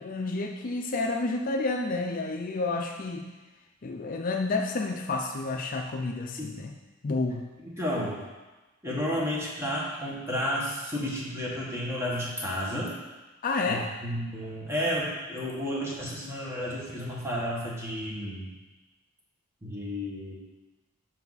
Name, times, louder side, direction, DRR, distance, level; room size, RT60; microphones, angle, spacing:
voice 1, 0.0-3.3 3.8-6.7 7.0-7.5 13.4-13.9, left 3 dB, 45° left, 3 dB, 0.5 m, -30 dB
voice 2, 7.6-8.2 8.8-13.0 13.6-18.5 19.6-20.3, equal, 15° right, -5 dB, 1.6 m, -32 dB
6.9 x 6.0 x 4.1 m, 1.2 s
head